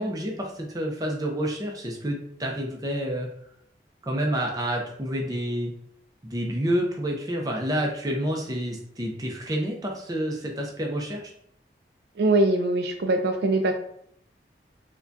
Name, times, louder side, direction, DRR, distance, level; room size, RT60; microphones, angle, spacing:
voice 1, 0.0-3.3 4.0-5.7 6.2-11.3, equal, 20° right, 0 dB, 0.6 m, -29 dB
voice 2, 12.2-13.7, right 2 dB, 65° right, 5 dB, 0.3 m, -22 dB
4.7 x 2.2 x 2.7 m, 0.68 s
head